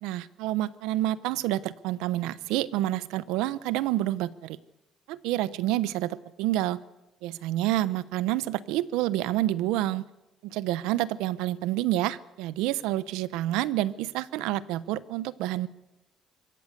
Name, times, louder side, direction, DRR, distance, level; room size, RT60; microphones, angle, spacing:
voice 1, 0.0-4.6 5.1-6.8 7.2-10.0 10.4-15.7, right 15 dB, 90° right, 17 dB, 0.8 m, -28 dB
23.5 x 18.0 x 6.7 m, 1.0 s
cardioid pair, 100°, 0 cm